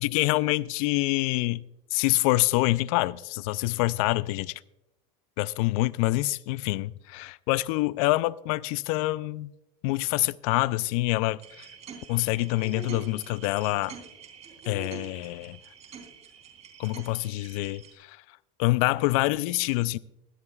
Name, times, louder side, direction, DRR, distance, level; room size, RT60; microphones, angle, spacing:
voice 1, 0.0-1.6 1.9-4.6 5.4-9.5 9.8-11.7 12.1-14.0 14.7-15.6 16.8-18.2 18.6-20.0, left 19 dB, 75° left, 0.5 m, -26 dB
sound 1, 11.4-17.9, right 7 dB, 35° right, 3.6 m, -45 dB
19.0 x 13.0 x 2.4 m
supercardioid pair, 110°, 18 cm